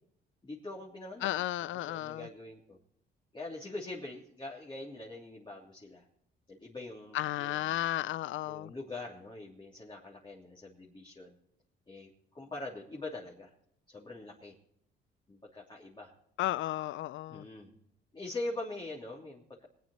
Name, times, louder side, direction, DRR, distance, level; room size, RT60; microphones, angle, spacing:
voice 1, 0.4-2.8 3.3-6.0 6.5-7.9 8.4-11.4 11.9-13.5 13.9-14.5 15.3-16.1 17.3-17.8 18.1-19.7, left 2 dB, 25° left, 3.1 m, -43 dB
voice 2, 1.2-2.3 7.1-8.7 16.4-17.4, left 14 dB, 75° left, 0.5 m, -33 dB
21.0 x 9.5 x 4.2 m
cardioid pair, 90°, 20 cm